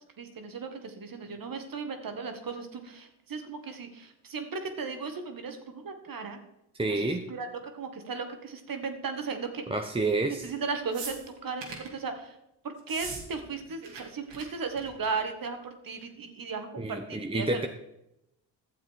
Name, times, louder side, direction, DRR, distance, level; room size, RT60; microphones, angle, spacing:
voice 1, 0.2-6.4 6.8-9.6 10.4-12.4 12.6-17.6, right 4 dB, 50° right, 6 dB, 1.9 m, -36 dB
voice 2, 6.8-7.3 9.7-10.5 16.8-17.7, right 2 dB, 10° right, 4 dB, 0.8 m, -29 dB
sound 1, 10.9-11.9 12.8-13.2 13.5-14.0 14.3-14.4 14.7-15.1 16.0-16.1, right 4 dB, 70° right, 2.5 m, -40 dB
12.0 x 7.4 x 4.6 m, 0.86 s
supercardioid pair, 55°, 45 cm